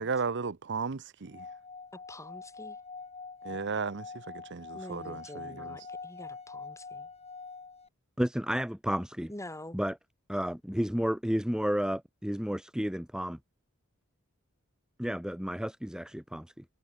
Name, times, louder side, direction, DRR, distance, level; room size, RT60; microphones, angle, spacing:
voice 1, 0.0-1.5 3.4-5.8, right 5 dB, 55° right, 0.8 m, -35 dB
Singing / Glass, 1.3-7.9, left 4 dB, 30° left, 6.0 m, -44 dB
voice 2, 1.9-2.8 4.7-7.1 9.3-9.8, left 1 dB, 15° left, 5.8 m, -46 dB
voice 3, 8.2-9.3 9.7-10.0 10.3-13.4 15.0-16.6, equal, 5° right, 1.0 m, -31 dB
head